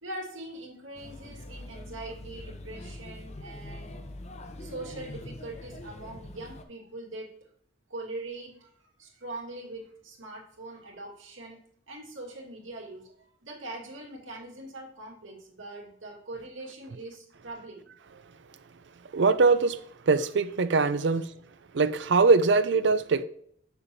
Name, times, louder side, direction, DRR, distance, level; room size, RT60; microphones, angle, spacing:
voice 1, 0.0-4.0 4.6-7.3 7.9-11.6 11.9-17.9 21.0-21.2, right 2 dB, 90° right, 2.5 m, -42 dB
Male speech man speaking / Child speech kid speaking / Chatter, 0.9-6.6, left 1 dB, 35° left, 0.7 m, -43 dB
voice 2, 19.1-19.8 20.1-21.3 21.7-23.2, right 4 dB, 65° right, 0.5 m, -22 dB
6.9 x 6.9 x 2.7 m
head